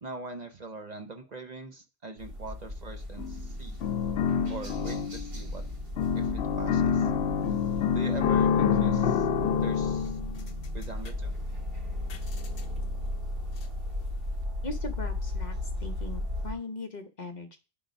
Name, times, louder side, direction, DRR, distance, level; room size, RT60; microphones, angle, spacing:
voice 1, 0.0-3.8 4.5-5.6 6.2-7.1 7.9-9.3 9.6-10.2 10.7-11.4, right 3 dB, 45° right, 5 dB, 0.9 m, -42 dB
sound 1, 2.2-16.5, left 1 dB, 60° right, 1.9 m, -36 dB
sound 2, 3.2-3.5 3.8-5.5 6.0-11.1 12.1-12.2 12.6-12.7, left 7 dB, 75° left, 1.0 m, -27 dB
voice 2, 14.6-15.6 15.8-17.6, left 3 dB, 45° left, 5 dB, 0.9 m, -39 dB
10.0 x 3.9 x 5.2 m, 0.33 s
omnidirectional pair, 1.1 m